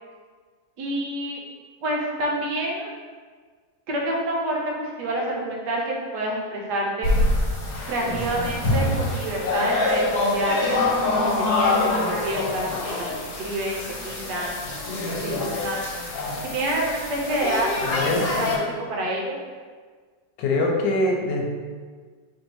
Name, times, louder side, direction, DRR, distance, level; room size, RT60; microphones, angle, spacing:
voice 1, 0.8-1.4 1.8-2.9 3.9-7.1 7.9-10.8 11.2-14.6 15.2-16.0 16.4-18.6 18.9-19.4, right 1 dB, 75° right, -2 dB, 1.2 m, -28 dB
sound 1, 7.0-18.6, left 2 dB, 60° left, 1.3 m, -25 dB
voice 2, 17.8-18.2 20.4-21.5, left 2 dB, 80° left, 1 dB, 1.3 m, -23 dB
3.2 x 2.6 x 4.5 m, 1.6 s
omnidirectional pair, 2.0 m